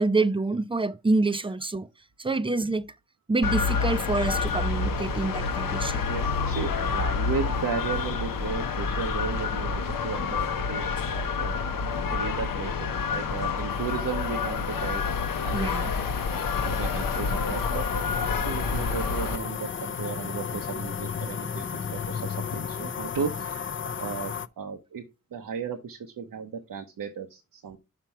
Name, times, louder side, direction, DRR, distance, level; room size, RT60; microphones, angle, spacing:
voice 1, 0.0-1.9 2.2-2.8 3.3-6.1 15.5-15.9, right 3 dB, 15° right, 0.5 m, -26 dB
sound 1, 3.4-19.4, left 5 dB, 80° left, 0.8 m, -28 dB
voice 2, 6.1-11.8 12.1-15.0 15.4-15.9 16.4-17.9 18.4-25.0 25.3-27.8, right 6 dB, 75° right, 0.9 m, -35 dB
sound 2, 13.7-24.5, left 7 dB, 35° left, 0.5 m, -35 dB
6.0 x 4.4 x 5.8 m
cardioid pair, 45°, 33 cm